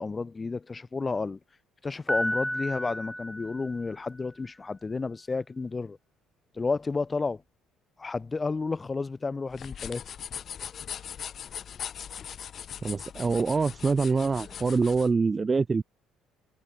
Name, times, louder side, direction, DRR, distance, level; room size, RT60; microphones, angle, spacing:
voice 1, 0.0-1.4 1.8-6.0 6.5-7.4 8.0-10.0, left 4 dB, 20° left, 4.0 m, -31 dB
Piano, 2.1-4.2, equal, ahead, 0.4 m, -32 dB
sound 1, 9.5-15.1, left 8 dB, 45° left, 1.6 m, -40 dB
voice 2, 12.8-15.8, right 4 dB, 25° right, 1.5 m, -25 dB
cardioid pair, 105°, 0 cm